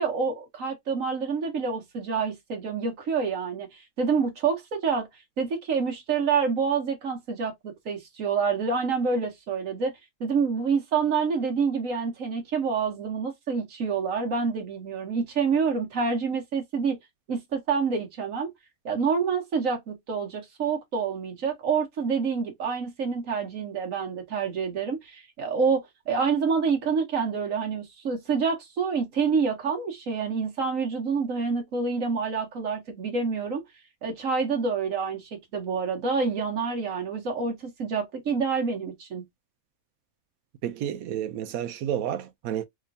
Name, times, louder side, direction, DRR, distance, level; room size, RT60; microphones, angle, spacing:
voice 1, 0.0-5.1 5.4-9.9 10.2-17.0 17.3-18.5 18.8-33.6 34.0-39.2, right 5 dB, 70° right, 1.4 m, -27 dB
voice 2, 40.6-42.6, right 10 dB, 85° right, 1.0 m, -30 dB
3.6 x 3.0 x 2.6 m
omnidirectional pair, 1.5 m